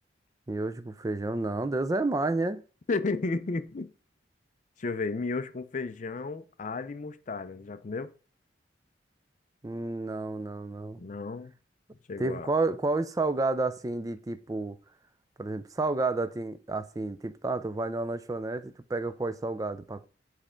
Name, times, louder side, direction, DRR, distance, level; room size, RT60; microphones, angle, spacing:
voice 1, 0.5-2.6 9.6-11.0 12.2-14.8 15.4-20.1, right 2 dB, 20° right, 0.4 m, -30 dB
voice 2, 2.9-3.9 4.8-8.1 11.0-11.5 12.1-12.5, left 3 dB, 45° left, 0.5 m, -33 dB
7.4 x 3.3 x 5.0 m
head